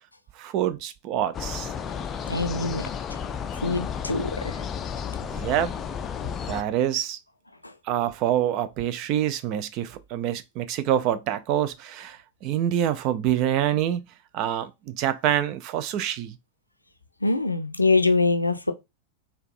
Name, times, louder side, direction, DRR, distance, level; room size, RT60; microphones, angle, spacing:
voice 1, 0.4-1.7 5.3-5.7 6.5-7.2 7.9-16.4, right 11 dB, 40° right, 0.4 m, -26 dB
sound 1, 1.3-6.6, left 7 dB, 25° left, 0.4 m, -32 dB
voice 2, 2.3-3.2 3.6-4.6 7.6-7.7 17.2-18.7, left 3 dB, 85° left, 0.4 m, -24 dB
4.5 x 2.3 x 2.5 m
figure-of-eight pair, 90°, 0 cm